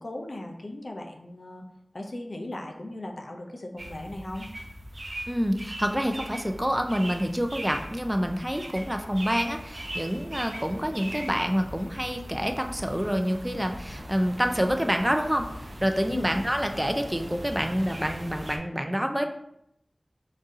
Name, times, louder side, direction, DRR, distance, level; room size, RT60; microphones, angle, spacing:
voice 1, 0.0-1.6 1.9-4.5 16.1-16.3, left 1 dB, 70° left, 2 dB, 0.5 m, -37 dB
sound 1, 3.8-18.6, right 1 dB, 70° right, 0.6 m, -40 dB
voice 2, 5.3-15.5 15.8-19.3, equal, 10° right, 5 dB, 0.4 m, -27 dB
3.9 x 2.7 x 3.6 m, 0.77 s
wide cardioid pair, 45°, 0 cm